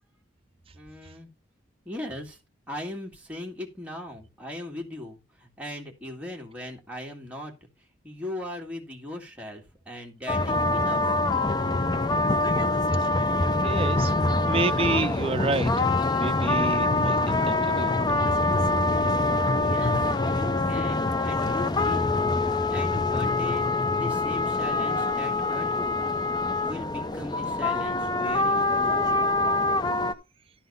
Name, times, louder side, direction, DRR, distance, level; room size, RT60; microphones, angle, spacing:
voice 1, 0.7-1.3 1.8-2.4 2.7-7.7 8.0-11.2 19.5-22.2 22.7-26.3 26.6-29.1, left 1 dB, 5° right, 1.9 m, -39 dB
sound 1, 10.3-30.1, left 2 dB, 25° left, 0.5 m, -25 dB
voice 2, 13.6-14.1 14.5-15.9 16.2-17.9, right 3 dB, 30° right, 0.5 m, -29 dB
12.0 x 4.0 x 5.4 m
head